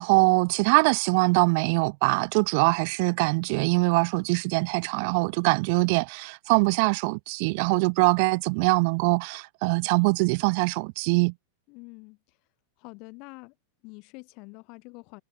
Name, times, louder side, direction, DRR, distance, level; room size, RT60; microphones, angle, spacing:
voice 1, 0.0-11.3, right 32 dB, 55° right, 2.1 m, -23 dB
voice 2, 11.7-12.4 12.8-13.6 13.8-15.2, left 29 dB, 50° left, 6.3 m, -46 dB
hypercardioid pair, 120°, 0 cm